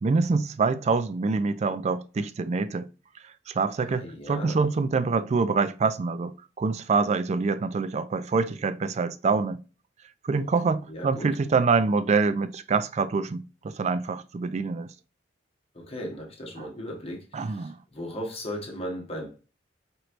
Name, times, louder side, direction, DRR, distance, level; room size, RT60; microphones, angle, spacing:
voice 1, 0.0-2.9 3.5-9.6 10.2-14.9 16.6-16.7 17.3-17.8, right 4 dB, 35° right, 0.3 m, -25 dB
voice 2, 3.8-4.6 10.4-10.5 10.9-11.4 15.7-19.4, equal, 35° left, 1.1 m, -37 dB
4.5 x 3.1 x 2.5 m
head